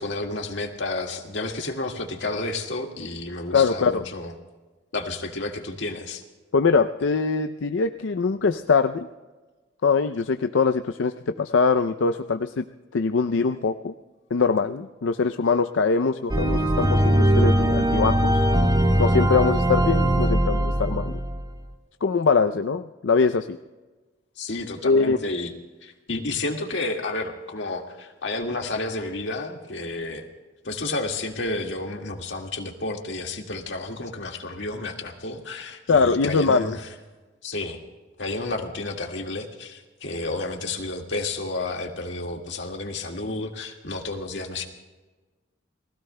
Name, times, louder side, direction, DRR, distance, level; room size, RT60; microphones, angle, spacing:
voice 1, 0.0-4.3 4.9-6.2 24.4-25.5 25.8-30.2 30.6-36.8 37.4-37.8 38.2-44.7, left 2 dB, 70° left, 2 dB, 1.9 m, -31 dB
voice 2, 3.5-4.0 6.5-9.1 9.8-12.6 12.9-13.9 14.3-18.4 19.0-21.2 22.0-23.6 24.8-25.2 35.9-36.8, left 4 dB, 90° left, 8 dB, 0.5 m, -22 dB
sound 1, 16.3-21.4, right 1 dB, 25° right, 1.3 m, -20 dB
29.5 x 19.5 x 2.2 m, 1.2 s
head